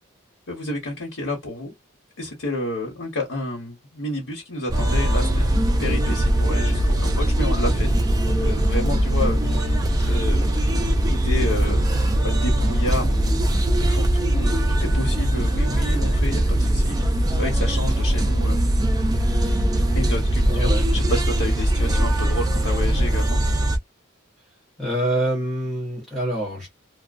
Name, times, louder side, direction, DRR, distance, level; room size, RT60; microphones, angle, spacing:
voice 1, 0.5-1.7 2.2-5.5 5.8-7.9 8.2-10.7 11.1-11.9 12.2-13.4 13.7-17.0 17.3-18.6 19.9-23.4, left 1 dB, 80° left, 1.1 m, -30 dB
sound 1, 4.7-23.8, right 1 dB, 20° right, 0.3 m, -21 dB
voice 2, 20.5-20.8 24.8-26.7, right 1 dB, ahead, 0.9 m, -26 dB
2.3 x 2.3 x 2.4 m
head